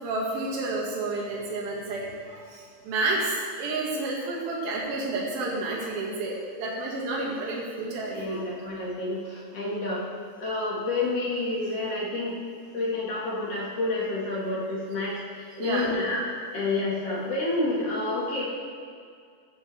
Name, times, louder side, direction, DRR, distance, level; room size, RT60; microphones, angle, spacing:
voice 1, 0.0-8.5 15.6-15.9, right 2 dB, 60° right, -4 dB, 3.5 m, -30 dB
voice 2, 8.1-10.0 10.4-12.3 12.7-16.3 16.5-18.4, left 2 dB, 45° left, -6 dB, 2.2 m, -29 dB
15.5 x 8.7 x 3.4 m, 2.2 s
omnidirectional pair, 5.0 m